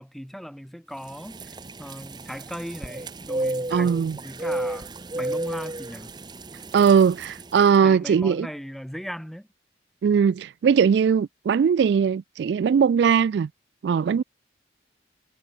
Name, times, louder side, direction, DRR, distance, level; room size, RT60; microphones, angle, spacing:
voice 1, 0.0-6.1 7.8-9.5, equal, ahead, 1.0 m, -38 dB
sound 1, 1.0-7.7, right 2 dB, 25° right, 0.9 m, -33 dB
voice 2, 3.7-4.2 6.7-8.5 10.0-13.5 13.8-14.2, right 7 dB, 75° right, 0.3 m, -20 dB
head